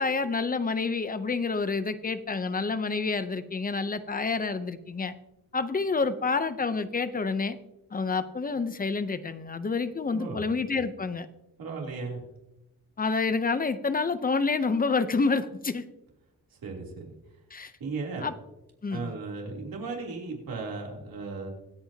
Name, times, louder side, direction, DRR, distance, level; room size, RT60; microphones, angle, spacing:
voice 1, 0.0-5.1 5.5-7.6 7.9-11.3 13.0-15.8 17.5-17.7 18.2-18.3 18.8-19.1, left 4 dB, 25° left, 11 dB, 0.7 m, -28 dB
voice 2, 11.6-12.2 16.6-17.1 17.8-18.3 18.9-21.5, right 4 dB, 75° right, -1 dB, 3.3 m, -36 dB
24.5 x 8.7 x 2.9 m, 0.94 s
wide cardioid pair, 140°, 35 cm